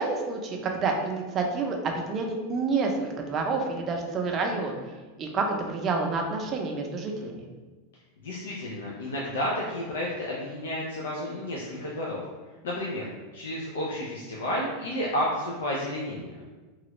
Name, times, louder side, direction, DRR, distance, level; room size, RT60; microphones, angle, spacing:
voice 1, 0.0-4.8 5.2-7.4, right 4 dB, 30° right, 2 dB, 0.5 m, -28 dB
voice 2, 8.2-12.2 12.6-13.1 13.3-16.4, left 1 dB, 90° left, -4 dB, 0.5 m, -31 dB
3.0 x 2.4 x 3.0 m, 1.3 s
supercardioid pair, 130°, 0 cm